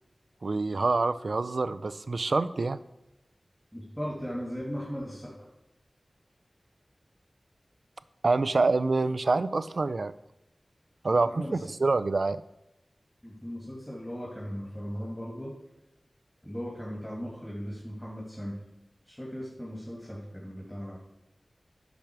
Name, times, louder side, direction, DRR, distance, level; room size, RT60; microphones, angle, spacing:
voice 1, 0.4-2.8 8.2-10.1 11.0-11.4 11.8-12.4, right 3 dB, 75° right, 14 dB, 0.4 m, -26 dB
voice 2, 3.7-5.3 11.3-11.7 13.2-15.6 16.4-18.6 19.0-21.0, equal, 10° left, -4 dB, 2.5 m, -37 dB
10.5 x 6.0 x 4.6 m, 0.89 s
wide cardioid pair, 50°, 0 cm